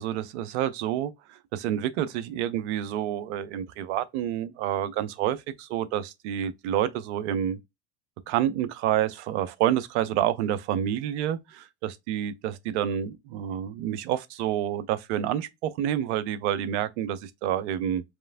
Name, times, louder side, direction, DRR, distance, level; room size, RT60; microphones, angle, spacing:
voice 1, 0.0-7.6 8.3-18.0, right 11 dB, 75° right, 0.8 m, -28 dB
4.8 x 3.1 x 2.6 m
hypercardioid pair, 85°, 34 cm